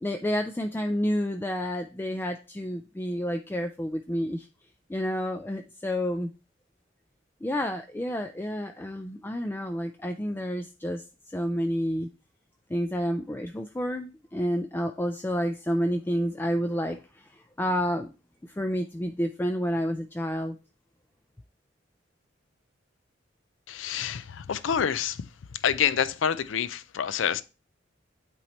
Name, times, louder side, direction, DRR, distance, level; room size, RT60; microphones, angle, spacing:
voice 1, 0.0-4.5 4.9-6.3 7.4-12.1 12.7-18.1 18.5-20.6, equal, 10° left, 0.3 m, -29 dB
voice 2, 23.7-25.2 25.6-27.4, left 8 dB, 90° left, 0.5 m, -27 dB
8.7 x 3.1 x 4.1 m
head